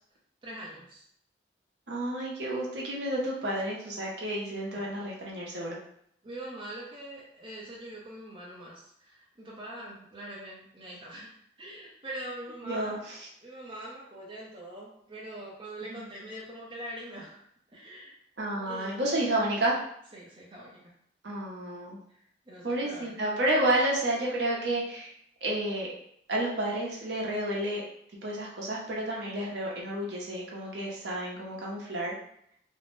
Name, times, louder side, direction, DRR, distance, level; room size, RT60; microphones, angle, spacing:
voice 1, 0.4-1.0 6.2-13.0 13.4-17.4 17.7-18.1 18.6-19.2 20.1-20.9 22.1-23.2, right 1 dB, 25° right, -5 dB, 0.6 m, -43 dB
voice 2, 1.9-5.8 12.6-13.2 15.9-16.0 18.4-19.8 21.2-22.0 22.6-25.1 25.4-25.9 26.3-27.8 28.2-32.1, right 1 dB, 70° right, -3 dB, 0.6 m, -30 dB
2.5 x 2.0 x 3.0 m, 0.69 s
head